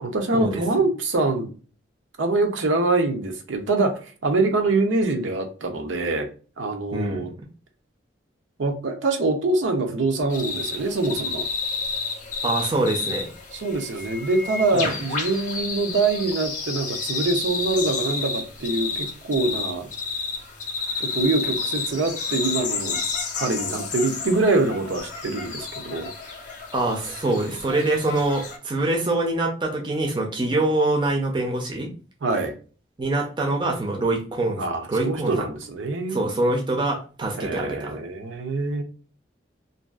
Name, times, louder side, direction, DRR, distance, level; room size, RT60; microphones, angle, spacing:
voice 1, 0.0-1.5 2.2-6.3 6.6-7.3 8.6-11.5 13.5-19.9 21.0-23.0 23.4-26.1 32.2-32.5 34.6-36.2 37.4-38.8, right 3 dB, 80° right, 4 dB, 0.6 m, -24 dB
voice 2, 6.9-7.3 12.4-13.3 14.7-14.9 26.7-31.9 33.0-34.6 34.9-35.5 36.1-38.0, right 2 dB, 25° right, 1 dB, 0.5 m, -24 dB
sound 1, 10.3-28.6, left 4 dB, 40° left, 0.5 m, -31 dB
2.6 x 2.3 x 2.3 m, 0.37 s
head